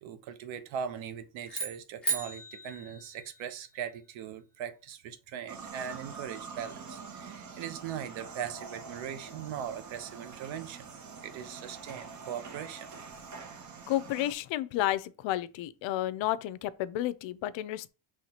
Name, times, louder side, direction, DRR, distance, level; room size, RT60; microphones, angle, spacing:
voice 1, 0.0-10.9 11.2-12.9, right 8 dB, 70° right, 0.8 m, -40 dB
sound 1, 1.5-3.8, right 3 dB, ahead, 1.3 m, -36 dB
sound 2, 5.5-14.3, right 5 dB, 35° right, 0.8 m, -45 dB
voice 2, 13.9-17.9, left 14 dB, 70° left, 0.5 m, -31 dB
5.7 x 3.2 x 2.8 m
cardioid pair, 110°, 48 cm